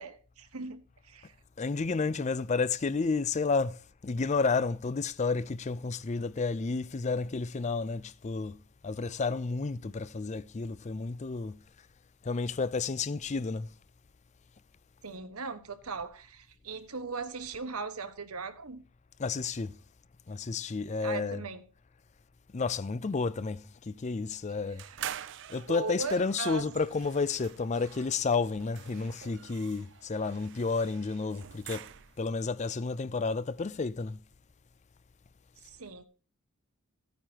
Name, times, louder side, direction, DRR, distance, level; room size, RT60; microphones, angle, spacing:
voice 1, 0.0-1.3 15.0-18.8 21.0-21.6 24.8-25.0 25.7-26.7 35.6-36.1, right 4 dB, 90° right, 1.3 m, -39 dB
voice 2, 1.6-3.8 4.0-11.6 12.2-13.7 19.2-19.8 20.3-21.4 22.5-24.8 25.5-31.9 32.2-34.2, left 4 dB, 35° left, 0.4 m, -31 dB
sound 1, 24.8-32.3, right 10 dB, 55° right, 0.5 m, -46 dB
14.5 x 9.3 x 2.8 m
head